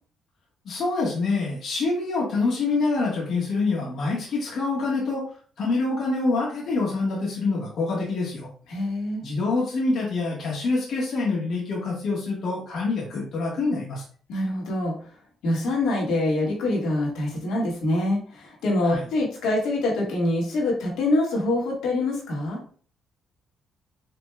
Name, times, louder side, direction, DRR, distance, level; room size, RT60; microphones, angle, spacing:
voice 1, 0.6-5.2 5.6-8.5 9.2-14.0 18.8-19.1, left 3 dB, 65° left, -5 dB, 1.4 m, -26 dB
voice 2, 8.7-9.2 14.3-14.9 15.4-22.6, left 2 dB, 85° left, -3 dB, 1.6 m, -25 dB
5.1 x 3.0 x 2.2 m, 0.43 s
cardioid pair, 90°, 0 cm